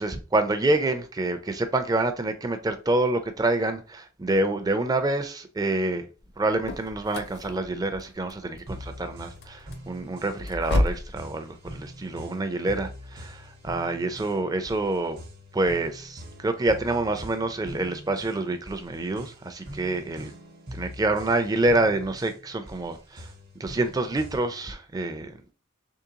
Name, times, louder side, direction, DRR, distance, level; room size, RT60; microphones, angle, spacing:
voice 1, 0.0-6.0 6.4-15.2 15.5-20.3 20.7-23.3 23.6-25.4, right 2 dB, 20° right, 0.4 m, -27 dB
sound 1, 6.2-11.2, left 1 dB, 55° left, 0.5 m, -31 dB
sound 2, 8.7-24.7, equal, 50° right, 0.8 m, -43 dB
3.6 x 3.2 x 2.8 m
head